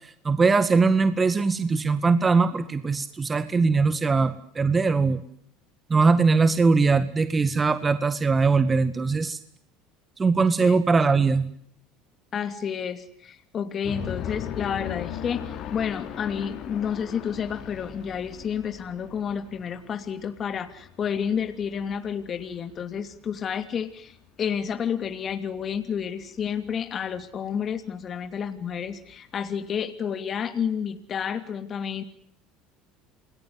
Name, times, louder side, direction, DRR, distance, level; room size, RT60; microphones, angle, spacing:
voice 1, 0.2-5.2 5.9-9.4 10.2-11.5, right 4 dB, 25° right, 10 dB, 2.0 m, -21 dB
voice 2, 12.3-32.0, left 7 dB, 40° left, 8 dB, 2.8 m, -30 dB
sound 1, 13.8-23.9 24.2-24.3 24.7-25.1 25.4-25.5 25.7-25.8 26.5-26.7 27.2-27.3, left 10 dB, 55° left, 4.1 m, -38 dB
29.0 x 21.0 x 9.7 m, 0.68 s
supercardioid pair, 95°, 0 cm